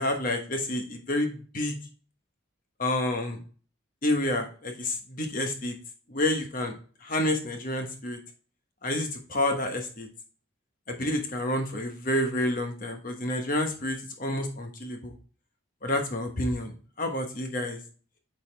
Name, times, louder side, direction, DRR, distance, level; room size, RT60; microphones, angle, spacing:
voice 1, 0.0-1.7 2.8-3.4 4.0-5.7 6.1-6.7 7.0-8.2 8.8-10.1 10.9-15.1 15.8-16.7 17.0-17.8, left 1 dB, 40° left, 4 dB, 1.1 m, -29 dB
8.7 x 4.1 x 3.3 m, 0.39 s
head